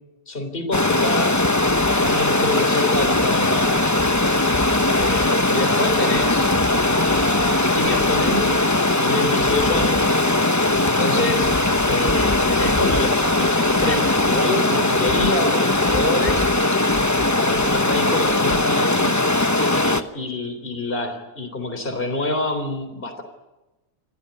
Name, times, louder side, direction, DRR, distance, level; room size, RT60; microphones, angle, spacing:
voice 1, 0.3-1.4 1.8-3.9 5.0-6.5 6.9-8.6 8.9-10.1 10.8-11.5 11.9-16.4 17.4-19.3 19.7-23.2, left 2 dB, 35° left, 7 dB, 3.7 m, -27 dB
Stream, 0.7-20.0, left 2 dB, 15° left, 0.8 m, -19 dB
28.0 x 16.0 x 9.7 m, 1.0 s
omnidirectional pair, 1.6 m